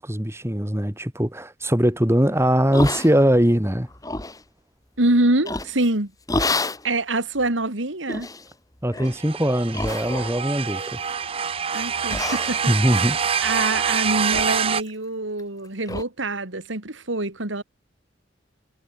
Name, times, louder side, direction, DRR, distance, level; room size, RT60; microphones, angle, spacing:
voice 1, 0.0-3.9 8.8-11.0 12.7-13.2, equal, 15° right, 2.2 m, -21 dB
sound 1, 2.7-3.5 3.9-4.4 5.4-5.9 6.3-6.8 7.4-7.5 8.1-8.5 8.9-9.2 9.7-10.4 10.8-11.3 11.7-11.8 12.1-13.9 14.3-14.6 14.9-15.0 15.4-15.5 15.9-16.0, left 2 dB, 20° left, 2.6 m, -29 dB
voice 2, 5.0-6.1 6.4-8.3 11.7-12.7 13.4-17.6, right 2 dB, 90° right, 3.0 m, -25 dB
sound 2, 9.0-14.8, right 7 dB, 30° right, 0.5 m, -26 dB
head